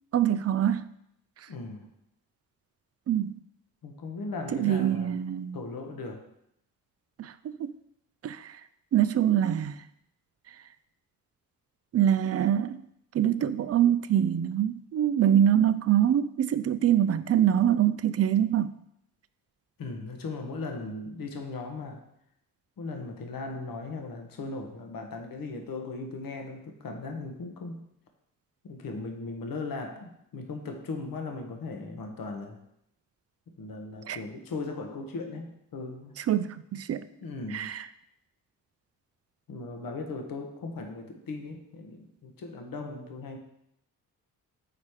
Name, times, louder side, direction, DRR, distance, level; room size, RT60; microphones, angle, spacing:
voice 1, 0.1-0.8 3.1-3.3 4.5-5.6 7.2-7.3 7.6-7.7 8.2-8.6 8.9-9.8 11.9-12.8 13.1-18.8 34.1-34.2 36.3-37.0 37.5-37.8, right 10 dB, 40° right, 14 dB, 0.4 m, -24 dB
voice 2, 1.5-1.9 3.8-5.2 5.5-6.3 19.8-22.0 22.8-27.9 28.6-32.6 33.6-36.2 37.1-37.8 39.5-43.4, left 3 dB, 60° left, 4 dB, 1.1 m, -38 dB
4.9 x 4.2 x 4.7 m, 0.76 s
supercardioid pair, 50°, 39 cm